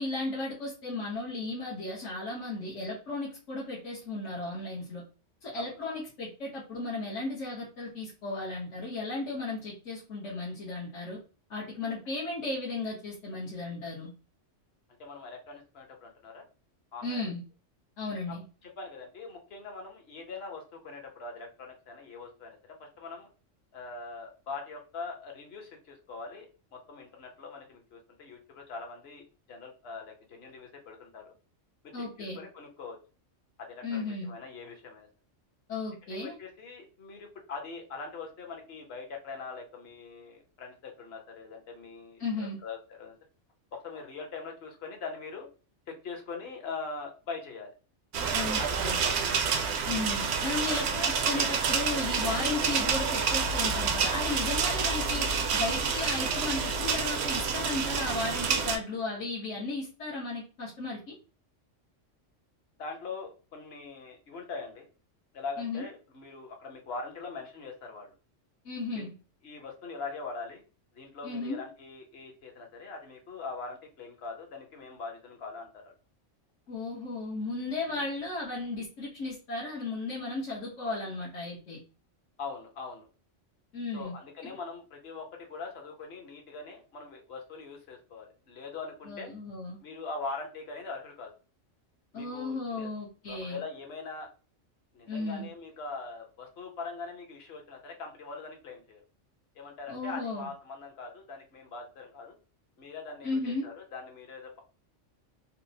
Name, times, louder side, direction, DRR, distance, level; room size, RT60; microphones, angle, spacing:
voice 1, 0.0-5.0 5.4-11.2 11.5-14.1 17.0-17.4 18.0-18.4 31.9-32.4 33.8-34.3 35.7-36.4 42.2-42.6 48.3-49.0 49.8-55.3 55.5-61.1 65.6-65.8 68.6-69.1 71.2-71.6 76.7-81.8 83.7-84.1 84.4-84.5 89.1-89.8 92.1-93.6 95.1-95.5 99.9-100.5 103.2-103.7, left 3 dB, 75° left, -5 dB, 1.4 m, -35 dB
voice 2, 5.5-6.0 15.0-16.4 16.9-17.3 18.3-23.3 23.7-26.5 26.7-31.3 32.0-32.1 32.4-33.0 33.6-35.1 36.1-43.1 43.7-45.5 45.9-47.7 48.6-49.3 62.8-64.9 65.3-68.1 68.9-69.0 69.4-70.6 70.9-75.9 77.9-78.1 82.4-83.1 83.9-89.3 89.8-91.3 92.1-92.9 93.3-94.3 94.9-99.0 99.5-102.3 102.8-104.6, left 4 dB, 55° left, 3 dB, 1.1 m, -42 dB
sound 1, 48.1-58.8, right 5 dB, 65° right, 0.8 m, -28 dB
4.2 x 2.1 x 2.7 m, 0.34 s
omnidirectional pair, 1.3 m